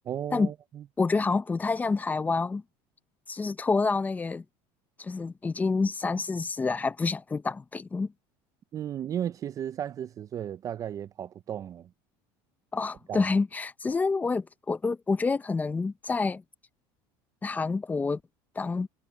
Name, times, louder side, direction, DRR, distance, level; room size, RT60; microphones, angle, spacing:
voice 1, 0.1-0.8 8.7-11.9 13.1-13.2, right 10 dB, 30° right, 0.4 m, -34 dB
voice 2, 1.0-2.6 3.3-4.4 5.0-8.1 12.7-16.4 17.4-18.2 18.6-18.9, left 4 dB, 15° left, 0.7 m, -28 dB
supercardioid pair, 130°, 11 cm